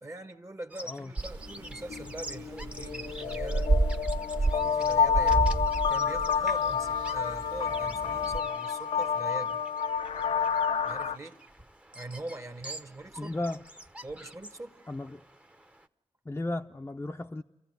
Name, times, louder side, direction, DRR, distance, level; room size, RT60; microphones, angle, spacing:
voice 1, 0.0-3.7 4.4-9.6 10.8-11.4 11.9-13.4 14.0-14.8, right 2 dB, 30° right, 1.2 m, -42 dB
Bird vocalization bird call bird song, 0.7-15.9, right 1 dB, 10° right, 0.9 m, -47 dB
sound 1, 1.2-8.4, right 2 dB, 45° right, 1.6 m, -32 dB
sound 2, 1.5-1.6 1.9-11.2, left 6 dB, 80° left, 0.8 m, -29 dB
voice 2, 13.2-13.6 14.9-15.2 16.3-17.4, left 2 dB, 20° left, 0.7 m, -34 dB
27.0 x 14.5 x 9.4 m
cardioid pair, 50°, 10 cm